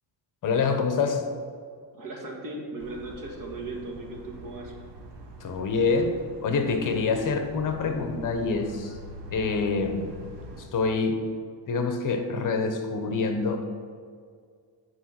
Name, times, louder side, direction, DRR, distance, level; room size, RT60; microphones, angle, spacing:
voice 1, 0.4-1.2 5.4-8.9 9.3-10.1 10.6-11.2 11.7-13.7, left 4 dB, 50° left, 6 dB, 0.9 m, -26 dB
voice 2, 1.9-4.7, right 2 dB, 50° right, 0 dB, 1.7 m, -37 dB
sound 1, 2.8-10.7, equal, 80° right, 1.3 m, -44 dB
9.0 x 4.8 x 5.8 m, 2.1 s
cardioid pair, 150°, 41 cm